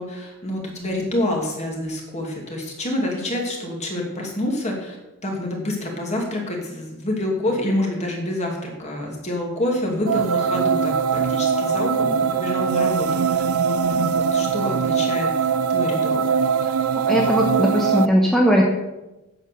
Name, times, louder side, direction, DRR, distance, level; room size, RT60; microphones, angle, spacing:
voice 1, 0.0-5.0 5.2-13.4 13.8-15.3 15.7-16.3, left 1 dB, 30° left, 0 dB, 2.6 m, -27 dB
sound 1, 10.1-18.1, right 6 dB, 85° right, 0.5 m, -21 dB
voice 2, 17.1-18.6, equal, ahead, -2 dB, 1.1 m, -18 dB
9.6 x 7.4 x 6.8 m, 1.0 s
head